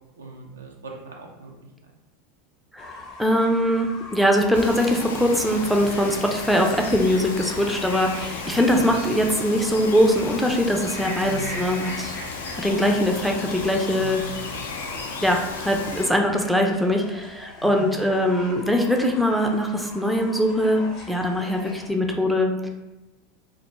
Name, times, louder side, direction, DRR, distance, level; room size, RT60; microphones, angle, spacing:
voice 1, 0.2-1.5 8.5-8.8 11.3-11.5 14.0-14.4 17.6-17.9, right 4 dB, 90° right, 0 dB, 0.4 m, -38 dB
voice 2, 2.7-12.1 12.6-14.4 15.2-22.7, equal, ahead, 2 dB, 0.4 m, -22 dB
Fowl / Bird, 2.8-21.9, left 2 dB, 50° left, 0.7 m, -42 dB
Bird vocalization bird call bird song, 4.5-16.1, left 4 dB, 80° left, 0.3 m, -34 dB
2.1 x 2.1 x 3.0 m, 1.0 s
hypercardioid pair, 90°, 0 cm